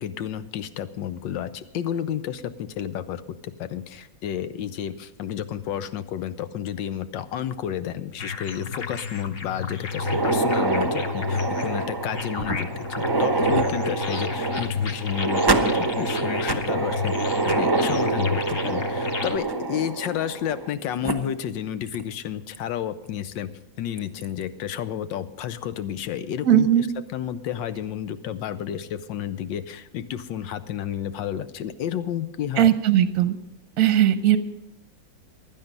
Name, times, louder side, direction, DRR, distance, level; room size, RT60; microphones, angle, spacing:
voice 1, 0.0-17.2 17.4-23.5 23.8-26.9 27.1-32.7, left 10 dB, 85° left, 12 dB, 1.5 m, -31 dB
sound 1, 8.2-19.4, left 6 dB, 40° left, 0.9 m, -32 dB
sound 2, 9.9-20.7 21.0-21.1 21.9-22.0 22.5-22.6 24.0-24.2, right 3 dB, 25° right, 0.5 m, -26 dB
voice 2, 26.5-26.9 32.6-33.4 33.8-34.4, right 11 dB, 60° right, 10 dB, 1.0 m, -18 dB
16.0 x 11.0 x 5.3 m, 0.87 s
omnidirectional pair, 2.0 m